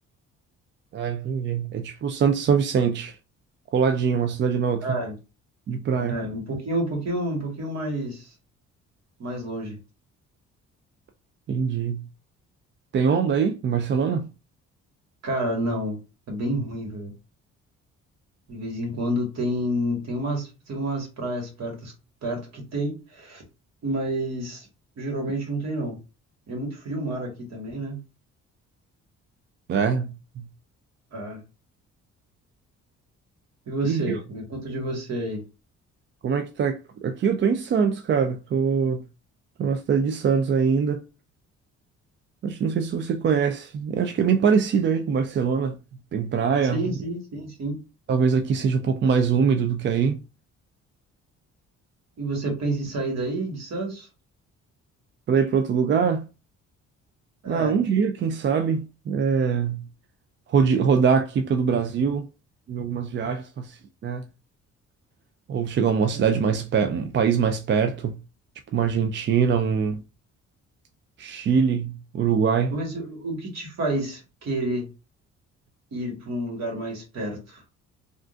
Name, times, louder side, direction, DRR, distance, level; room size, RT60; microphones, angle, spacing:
voice 1, 0.9-3.2 3.7-4.9 5.7-6.2 11.5-12.0 12.9-14.3 29.7-30.5 33.8-34.2 36.2-39.0 39.6-41.0 42.4-45.8 46.1-46.9 48.1-50.2 55.3-56.2 57.5-59.8 60.5-62.3 62.7-64.2 65.5-68.2 68.7-70.0 71.2-72.7, right 6 dB, 40° right, 0.4 m, -23 dB
voice 2, 4.8-5.2 5.9-8.3 9.2-9.8 15.2-16.0 16.3-17.1 18.5-21.9 22.2-23.4 23.8-24.7 25.0-26.0 26.5-28.0 31.1-31.4 33.7-35.4 46.7-47.8 52.2-54.1 57.4-57.7 66.1-66.3 72.7-74.9 75.9-77.6, right 1 dB, 60° right, 1.6 m, -29 dB
3.6 x 2.4 x 2.5 m
cardioid pair, 90°, 30 cm